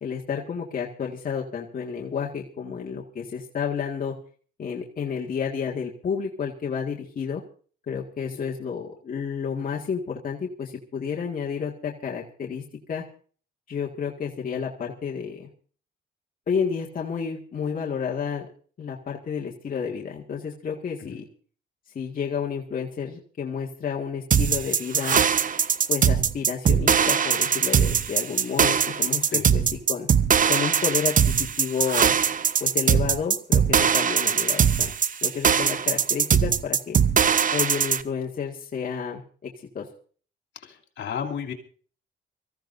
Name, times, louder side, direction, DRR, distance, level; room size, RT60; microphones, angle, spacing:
voice 1, 0.0-4.1 4.6-7.4 7.9-13.0 13.7-15.5 16.5-18.5 18.8-21.2 22.0-25.2 25.9-29.6 29.9-30.1 30.5-32.2 32.6-34.9 35.2-37.0 37.5-39.9, left 6 dB, 45° left, -2 dB, 1.9 m, -30 dB
sound 1, 24.3-38.0, right 7 dB, 40° right, 0.8 m, -21 dB
voice 2, 40.5-41.5, left 7 dB, 65° left, 2 dB, 2.9 m, -34 dB
24.5 x 15.0 x 2.6 m, 0.42 s
cardioid pair, 90°, 20 cm